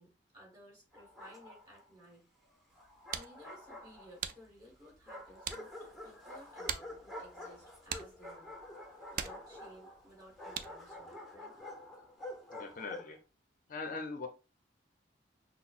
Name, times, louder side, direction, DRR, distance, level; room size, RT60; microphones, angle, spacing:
voice 1, 0.0-2.3 3.1-5.7 6.0-8.5 9.1-11.5, equal, 25° right, -2 dB, 1.9 m, -57 dB
Bark, 0.9-1.8 2.8-4.4 5.1-13.2, left 1 dB, ahead, 0.7 m, -48 dB
sound 1, 2.7-11.0, right 8 dB, 50° right, 0.3 m, -45 dB
voice 2, 12.5-13.2 13.7-14.3, left 3 dB, 45° left, 6 dB, 0.5 m, -41 dB
5.8 x 2.0 x 2.4 m, 0.30 s
head